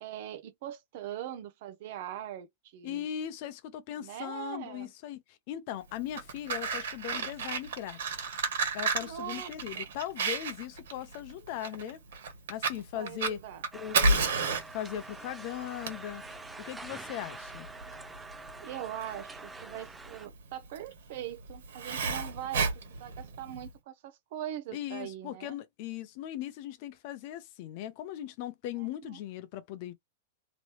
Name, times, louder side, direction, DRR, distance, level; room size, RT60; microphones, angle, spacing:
voice 1, 0.0-3.1 4.0-4.9 9.0-9.9 12.9-13.6 18.6-25.6 28.8-29.2, right 11 dB, 50° right, 0.6 m, -41 dB
voice 2, 2.8-8.0 8.7-12.0 12.5-13.4 13.7-14.3 14.7-16.2 16.6-17.7 24.7-29.9, left 11 dB, 40° left, 0.7 m, -39 dB
Fire, 6.0-23.7, right 4 dB, 80° right, 1.6 m, -33 dB
sound 1, 13.7-20.3, right 3 dB, 5° right, 0.3 m, -46 dB
3.1 x 2.9 x 2.9 m
supercardioid pair, 165°, 0 cm